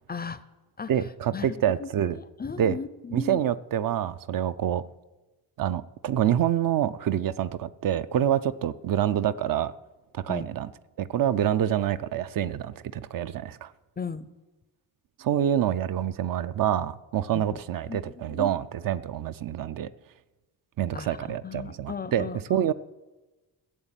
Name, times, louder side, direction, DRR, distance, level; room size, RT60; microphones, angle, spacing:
voice 1, 0.1-0.4 0.8-0.9 1.3-1.5 1.8-3.4 10.3-10.5 14.0-14.3 17.3-17.6 17.9-18.5 20.9-22.6, left 5 dB, 25° left, 0.4 m, -36 dB
voice 2, 0.9-2.2 2.6-2.8 3.1-4.8 5.6-9.7 10.1-10.7 11.0-13.7 15.2-19.9 20.8-22.7, right 10 dB, 55° right, 0.5 m, -27 dB
15.5 x 7.2 x 9.0 m
wide cardioid pair, 155°, 40 cm